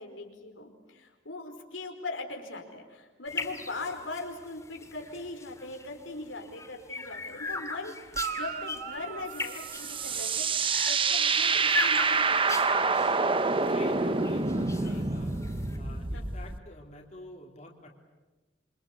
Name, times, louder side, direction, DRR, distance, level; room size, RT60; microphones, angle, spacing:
voice 1, 0.0-13.0 16.1-16.2, left 2 dB, 90° left, 3 dB, 4.9 m, -40 dB
sound 1, 3.2-15.8, left 3 dB, 15° left, 2.4 m, -39 dB
Guitar, 8.1-10.7 14.5-14.6, right 8 dB, 50° right, 1.3 m, -39 dB
sound 2, 9.4-16.6, right 4 dB, 30° right, 1.0 m, -27 dB
voice 2, 13.6-15.3 15.8-17.9, left 1 dB, 40° left, 1 dB, 3.4 m, -47 dB
27.5 x 25.0 x 8.5 m, 1.2 s
head